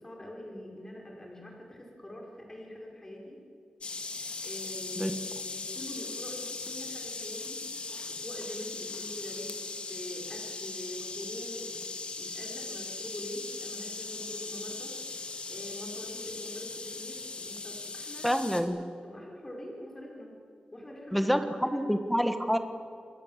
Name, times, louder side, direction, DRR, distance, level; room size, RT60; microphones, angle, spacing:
voice 1, 0.0-3.4 4.4-5.2 5.5-7.6 8.1-9.6 9.9-11.8 12.2-14.9 15.4-18.7 19.0-20.3 20.7-21.8, left 1 dB, 20° left, -1 dB, 5.2 m, -44 dB
sound 1, 3.8-18.6, left 3 dB, 45° left, 2.3 m, -39 dB
voice 2, 18.2-18.8 21.1-22.6, equal, ahead, 8 dB, 1.5 m, -27 dB
28.0 x 21.5 x 7.4 m, 2.4 s
wide cardioid pair, 180°, 3 cm